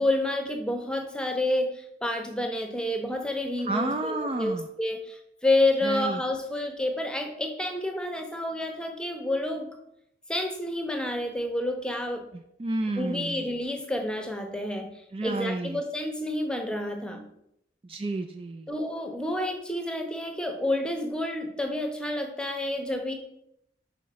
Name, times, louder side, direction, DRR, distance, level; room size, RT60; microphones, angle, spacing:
voice 1, 0.0-9.7 10.3-12.2 13.0-14.9 15.2-17.2 18.7-23.1, left 1 dB, 5° left, 4 dB, 0.8 m, -29 dB
voice 2, 3.6-4.7 5.8-6.2 12.6-13.4 15.1-15.8 17.8-18.7, right 2 dB, 30° right, 6 dB, 0.4 m, -30 dB
5.8 x 4.7 x 5.1 m, 0.76 s
head